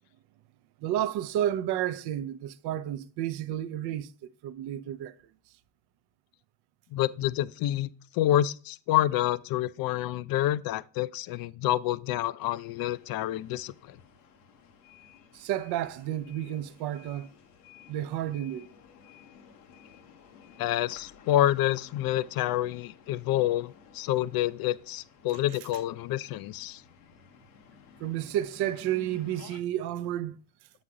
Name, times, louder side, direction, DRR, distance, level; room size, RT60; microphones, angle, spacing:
voice 1, 0.8-4.1 4.4-5.1 15.3-17.3 17.9-18.7 28.0-30.4, right 12 dB, 60° right, 0.7 m, -31 dB
voice 2, 6.9-7.9 8.1-14.0 20.6-26.8, left 13 dB, 55° left, 0.5 m, -28 dB
sound 1, 12.4-29.6, left 6 dB, 90° left, 1.0 m, -54 dB
7.4 x 4.1 x 4.8 m
hypercardioid pair, 70°, 45 cm